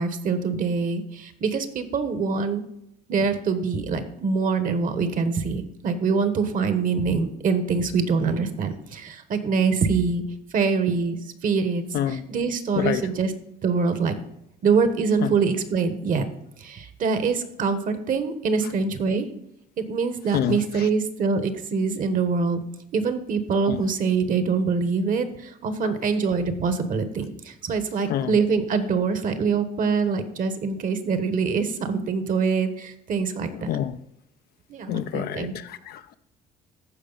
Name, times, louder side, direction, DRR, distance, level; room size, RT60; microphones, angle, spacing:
voice 1, 0.0-2.6 3.1-10.2 10.5-13.3 13.6-14.1 14.6-16.3 16.6-19.3 19.8-22.6 22.9-33.7 34.7-35.5, right 5 dB, 50° right, 1.3 m, -24 dB
voice 2, 33.7-34.0 34.9-36.2, left 10 dB, 70° left, 0.6 m, -27 dB
14.0 x 4.9 x 4.0 m
cardioid pair, 110°, 17 cm